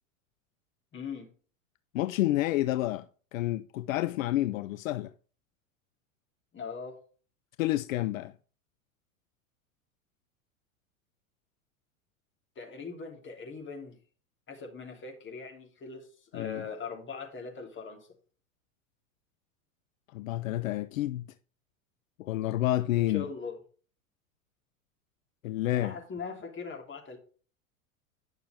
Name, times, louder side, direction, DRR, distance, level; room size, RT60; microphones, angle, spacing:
voice 1, 0.9-1.3 6.5-7.0 12.5-14.0 14.5-16.1 16.3-18.1 22.9-23.6 25.8-27.2, left 5 dB, 30° left, 3.2 m, -40 dB
voice 2, 1.9-3.1 3.3-5.1 7.6-8.3 16.3-16.6 20.1-21.3 22.2-23.3 25.4-25.9, left 15 dB, 70° left, 0.6 m, -29 dB
10.5 x 6.7 x 3.5 m
hypercardioid pair, 95°, 41 cm